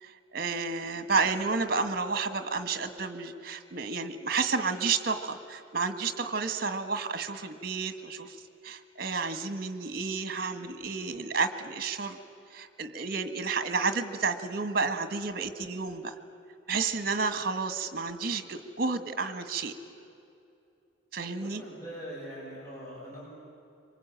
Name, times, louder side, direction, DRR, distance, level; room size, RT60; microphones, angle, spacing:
voice 1, 0.0-8.4 8.6-12.2 12.5-16.1 16.7-19.7 21.1-21.6, right 4 dB, 50° right, 9 dB, 1.7 m, -31 dB
voice 2, 21.2-23.2, equal, 15° left, -7 dB, 7.7 m, -43 dB
26.5 x 24.5 x 9.0 m, 2.7 s
head